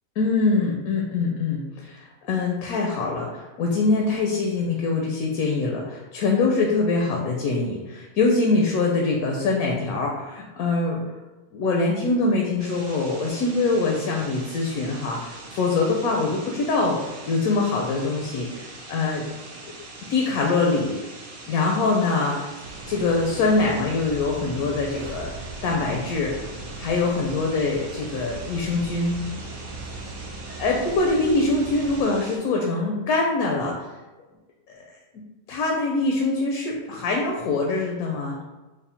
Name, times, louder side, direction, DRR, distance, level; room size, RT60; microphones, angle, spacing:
voice 1, 0.2-11.0 11.5-17.0 17.3-19.3 20.1-21.0 21.5-22.5 22.9-25.3 25.6-26.5 26.8-29.2 30.6-33.9 34.7-34.8 35.5-38.4, left 3 dB, 80° left, 0 dB, 1.0 m, -24 dB
sound 1, 12.6-32.4, right 2 dB, 55° right, 0.7 m, -42 dB
sound 2, 22.6-32.0, right 2 dB, 75° right, 1.0 m, -39 dB
3.4 x 2.1 x 4.1 m, 1.1 s
omnidirectional pair, 1.5 m